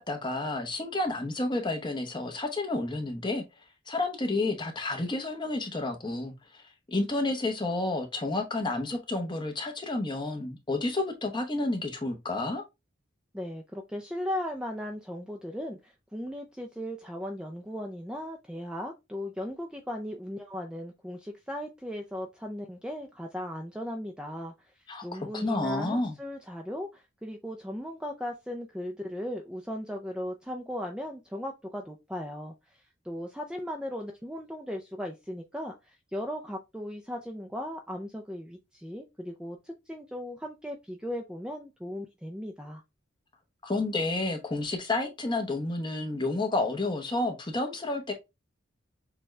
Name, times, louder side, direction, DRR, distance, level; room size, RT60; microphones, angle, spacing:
voice 1, 0.0-3.4 3.9-6.3 6.9-12.6 24.9-25.1 25.3-26.1 43.6-48.1, left 2 dB, 20° left, 0.9 m, -30 dB
voice 2, 13.3-24.7 25.0-42.8, equal, 5° right, 0.4 m, -37 dB
6.8 x 2.3 x 3.2 m
head